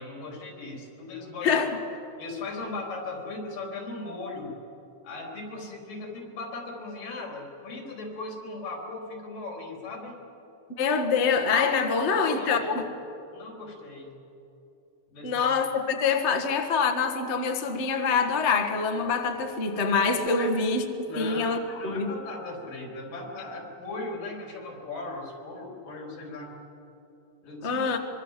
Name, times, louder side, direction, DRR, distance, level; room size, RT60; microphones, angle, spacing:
voice 1, 0.0-1.6 2.2-4.6 5.0-10.2 12.1-12.9 13.3-14.2 15.1-15.5 20.3-20.5 21.1-26.5 27.4-27.8, left 3 dB, 80° left, 0 dB, 5.4 m, -38 dB
voice 2, 10.8-12.6 15.2-20.8 21.2-21.6 21.8-22.1 27.6-28.0, left 5 dB, 45° left, 5 dB, 0.8 m, -25 dB
24.5 x 23.5 x 7.5 m, 2.9 s
omnidirectional pair, 3.8 m